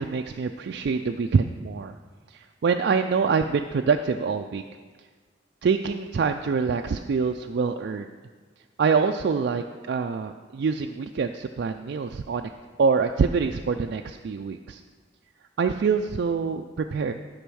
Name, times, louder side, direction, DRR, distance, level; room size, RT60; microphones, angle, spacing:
voice 1, 0.0-1.9 2.3-4.6 5.6-8.1 8.8-12.5 12.8-14.8 15.6-17.1, right 5 dB, 60° right, 5 dB, 0.3 m, -25 dB
10.0 x 5.4 x 6.2 m, 1.5 s
head